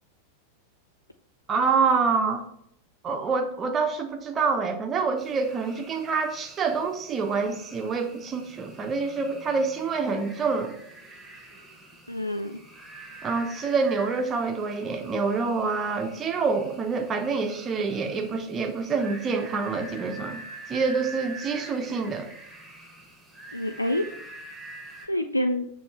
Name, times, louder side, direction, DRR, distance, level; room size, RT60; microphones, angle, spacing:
voice 1, 1.5-2.4 3.0-10.7 13.2-20.4 20.7-22.3, right 4 dB, 25° right, 6 dB, 0.8 m, -26 dB
sound 1, 5.2-25.1, right 2 dB, ahead, 1.4 m, -46 dB
voice 2, 12.1-12.6 23.5-24.4 25.0-25.7, left 1 dB, 85° left, 6 dB, 0.3 m, -28 dB
6.9 x 3.1 x 4.4 m, 0.73 s
figure-of-eight pair, 90°, 0 cm